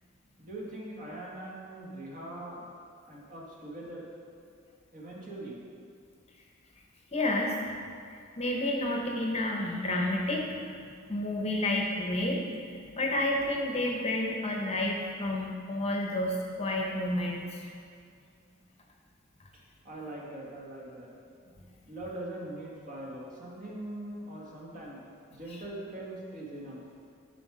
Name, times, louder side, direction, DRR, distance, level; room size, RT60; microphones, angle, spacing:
voice 1, 0.4-2.6 3.1-4.1 4.9-5.6 19.5-21.1 21.9-25.0 25.3-26.8, right 1 dB, 40° right, -4 dB, 1.6 m, -42 dB
voice 2, 7.1-7.6 8.1-12.4 12.7-17.7, left 1 dB, 30° left, 0 dB, 0.8 m, -30 dB
9.7 x 4.4 x 4.8 m, 2.3 s
head